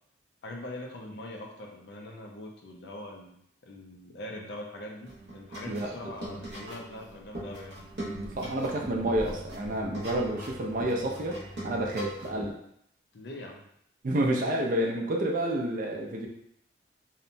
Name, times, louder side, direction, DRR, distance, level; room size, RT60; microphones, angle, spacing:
voice 1, 0.4-7.8 13.1-13.6, left 1 dB, 65° left, 0 dB, 0.5 m, -42 dB
sound 1, 5.0-12.5, right 1 dB, 65° right, 0.8 m, -41 dB
voice 2, 8.2-12.6 14.0-16.3, right 1 dB, 45° right, 0 dB, 0.4 m, -29 dB
2.8 x 2.1 x 2.6 m, 0.72 s
head